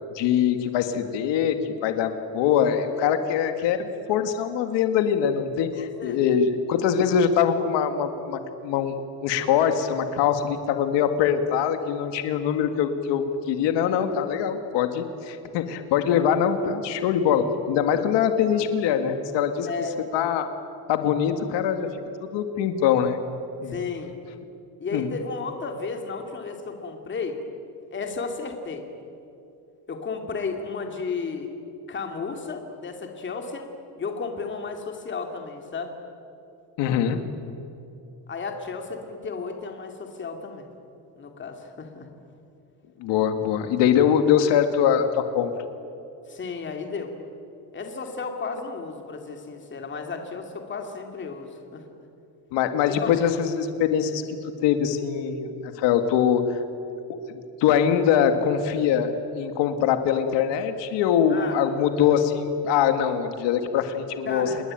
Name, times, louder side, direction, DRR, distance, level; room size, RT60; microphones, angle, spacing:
voice 1, 0.1-9.0 9.2-19.7 20.1-20.5 20.9-21.9 22.2-23.2 23.6-23.7 24.9-25.1 36.8-37.2 43.0-45.5 52.5-56.6 57.3-64.5, left 8 dB, 85° left, 7 dB, 2.0 m, -23 dB
voice 2, 5.8-6.2 19.7-19.9 23.7-24.1 24.8-27.4 27.9-28.8 29.9-31.5 31.9-33.7 34.0-36.0 38.3-40.7 41.2-42.1 46.3-47.1 47.7-51.8 52.9-53.3 61.3-61.6 64.2-64.6, left 4 dB, 25° left, 4 dB, 2.8 m, -33 dB
28.0 x 21.0 x 9.0 m, 2.8 s
cardioid pair, 160°, 42 cm